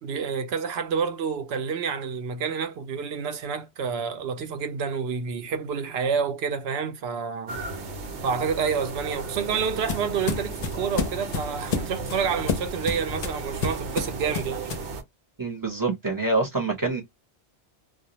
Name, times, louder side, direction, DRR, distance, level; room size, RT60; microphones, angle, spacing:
voice 1, 0.0-7.6 8.2-14.6, right 6 dB, 70° right, 0.8 m, -28 dB
sound 1, 7.5-15.0, right 3 dB, 90° right, 1.0 m, -35 dB
sound 2, 8.9-14.9, left 5 dB, 50° left, 0.6 m, -31 dB
voice 2, 15.4-17.0, right 3 dB, 20° right, 0.7 m, -26 dB
2.3 x 2.2 x 2.7 m
omnidirectional pair, 1.1 m